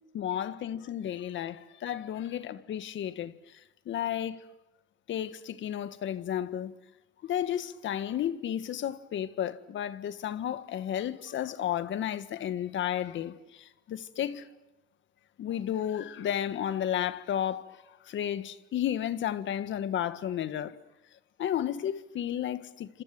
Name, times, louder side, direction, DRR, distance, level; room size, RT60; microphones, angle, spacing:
voice 1, 0.1-3.3 3.8-4.4 5.1-6.7 7.2-14.5 15.4-17.7 18.1-20.8 21.4-23.0, left 10 dB, 75° left, 1.6 m, -32 dB
29.5 x 26.0 x 7.7 m
cardioid pair, 90°, 20 cm